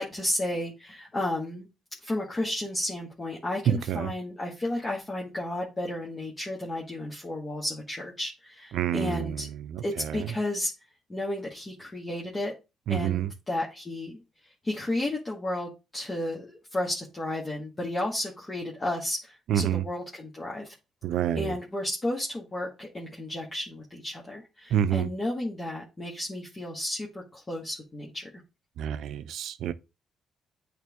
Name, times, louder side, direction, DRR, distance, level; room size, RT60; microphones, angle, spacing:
voice 1, 0.0-1.7 2.0-9.5 9.8-10.7 11.1-12.5 12.9-14.2 14.6-20.7 21.4-28.3, left 1 dB, 25° left, 1.6 m, -33 dB
voice 2, 3.7-4.1 8.7-10.3 12.9-13.3 19.5-19.8 21.0-21.5 24.7-25.1 28.8-29.7, right 10 dB, 75° right, 0.5 m, -28 dB
8.7 x 3.3 x 3.5 m
cardioid pair, 90°, 0 cm